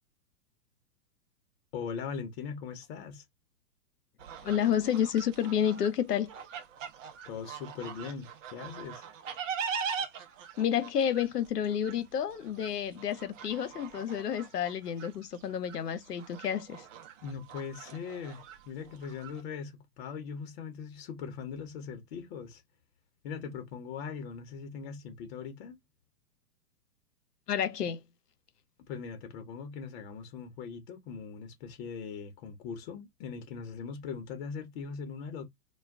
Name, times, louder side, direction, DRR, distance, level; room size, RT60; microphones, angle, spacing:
voice 1, 1.7-3.2 7.3-9.1 17.2-22.6 23.2-25.8 28.9-35.4, left 6 dB, 40° left, 0.8 m, -40 dB
sound 1, 4.2-19.4, right 6 dB, 55° right, 0.7 m, -42 dB
voice 2, 4.4-6.3 10.6-16.8 27.5-28.0, left 9 dB, 90° left, 0.7 m, -30 dB
2.3 x 2.2 x 3.4 m
hypercardioid pair, 115°, 46 cm